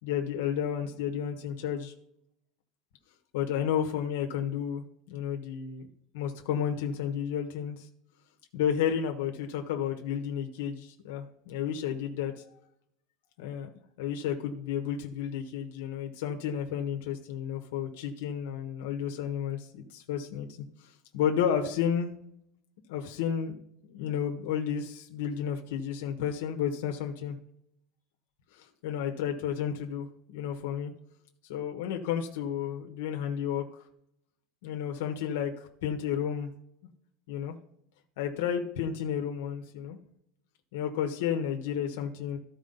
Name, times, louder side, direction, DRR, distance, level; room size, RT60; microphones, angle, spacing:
voice 1, 0.0-1.9 3.3-5.9 6.1-7.9 8.5-12.4 13.4-13.7 14.0-20.5 20.8-22.1 22.9-23.5 23.8-27.4 28.5-30.9 31.5-33.8 34.6-36.5 37.3-37.5 38.2-40.0 40.7-42.4, left 8 dB, 85° left, 3 dB, 1.2 m, -32 dB
13.5 x 4.8 x 4.0 m, 0.73 s
cardioid pair, 170°, 0 cm